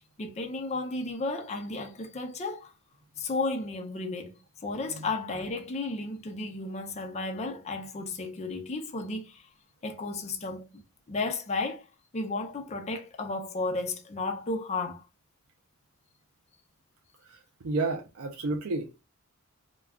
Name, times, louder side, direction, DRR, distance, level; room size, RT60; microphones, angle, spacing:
voice 1, 0.2-2.7 3.2-4.3 4.6-9.4 9.8-10.8 11.1-11.8 12.1-15.0, left 3 dB, 30° left, 0.5 m, -33 dB
voice 2, 17.3-19.0, right 3 dB, 70° right, 0.4 m, -32 dB
2.3 x 2.3 x 3.4 m
head